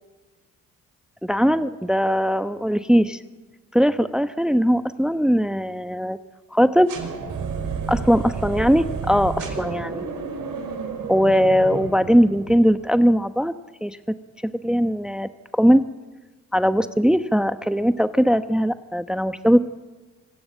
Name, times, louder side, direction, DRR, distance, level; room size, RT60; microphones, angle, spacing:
voice 1, 1.2-3.2 3.7-6.2 6.5-6.9 7.9-10.0 11.1-13.5 13.8-14.0 14.4-15.8 16.5-19.7, equal, ahead, 11 dB, 1.0 m, -20 dB
sound 1, 6.9-12.8, right 5 dB, 70° right, 5.2 m, -31 dB
25.5 x 15.5 x 8.4 m, 1.2 s
supercardioid pair, 55°, 34 cm